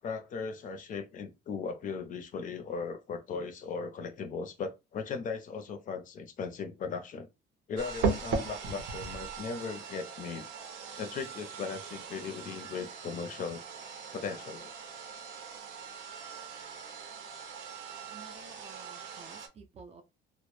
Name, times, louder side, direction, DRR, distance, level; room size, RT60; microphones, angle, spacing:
voice 1, 0.0-7.3 7.7-10.5 11.0-13.6 14.1-14.7, left 5 dB, 40° left, 0.5 m, -38 dB
sound 1, 7.8-19.5, right 5 dB, 75° right, 0.6 m, -39 dB
voice 2, 18.1-20.0, right 4 dB, 35° right, 0.4 m, -52 dB
2.0 x 2.0 x 3.0 m
cardioid pair, 145°, 20 cm